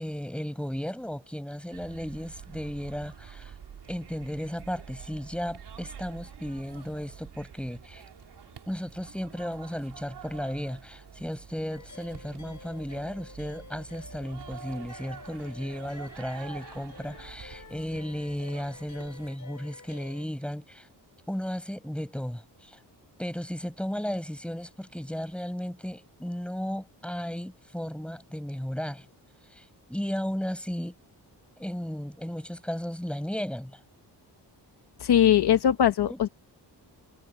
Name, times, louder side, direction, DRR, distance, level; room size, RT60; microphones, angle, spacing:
voice 1, 0.0-3.5 3.9-8.0 8.7-20.9 21.3-22.8 23.2-29.1 29.5-29.6 29.9-31.0 31.6-33.8 36.1-36.2, equal, 5° left, 5.7 m, -35 dB
sound 1, 1.7-19.3, right 8 dB, 70° right, 4.1 m, -47 dB
sound 2, 11.7-20.3, left 4 dB, 45° left, 5.7 m, -49 dB
voice 2, 35.0-36.3, left 10 dB, 70° left, 1.1 m, -21 dB
wide cardioid pair, 145°, 41 cm